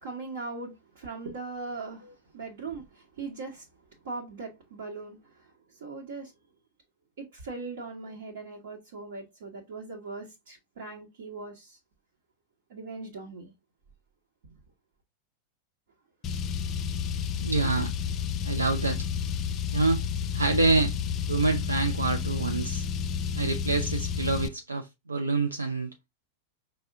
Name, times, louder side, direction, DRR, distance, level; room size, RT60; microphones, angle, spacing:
voice 1, 0.0-3.7 4.0-6.3 7.2-11.8 12.7-13.5 17.7-17.9, right 3 dB, 60° right, 1.1 m, -40 dB
Car, 16.2-24.5, left 7 dB, 30° left, 0.3 m, -31 dB
voice 2, 17.4-17.9 18.4-19.1 19.7-20.1 20.3-21.0 21.3-22.9 23.4-25.9, right 3 dB, 80° right, 0.4 m, -26 dB
5.3 x 2.1 x 3.5 m
figure-of-eight pair, 90°, 0 cm